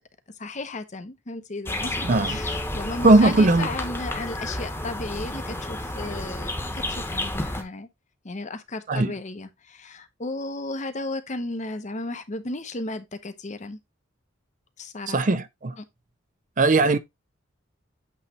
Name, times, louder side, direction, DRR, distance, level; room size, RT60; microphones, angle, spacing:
voice 1, 0.4-7.9 8.2-13.8 14.8-15.4 15.8-15.9, left 2 dB, 40° left, 0.8 m, -34 dB
sound 1, 1.7-7.6, left 1 dB, 10° left, 1.1 m, -31 dB
voice 2, 2.0-2.4 3.0-3.7 8.9-9.1 15.1-15.8 16.6-17.0, right 2 dB, 40° right, 0.5 m, -18 dB
8.4 x 3.1 x 4.2 m
head